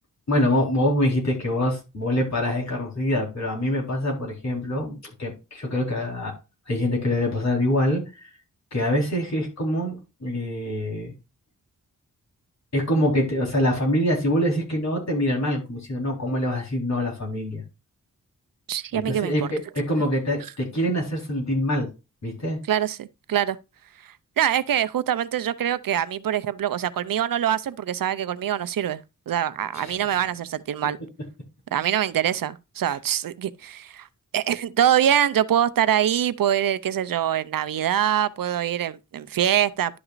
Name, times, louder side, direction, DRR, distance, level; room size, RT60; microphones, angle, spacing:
voice 1, 0.3-6.3 6.7-8.3 8.7-10.0 10.2-11.1 12.7-17.6 18.9-21.9 22.2-22.6 29.7-30.0, left 1 dB, 50° left, 4.1 m, -25 dB
voice 2, 18.7-19.5 22.7-23.6 24.0-31.0 31.7-34.1 34.3-40.0, right 10 dB, 80° right, 0.6 m, -24 dB
11.5 x 5.9 x 2.5 m
wide cardioid pair, 120°, 34 cm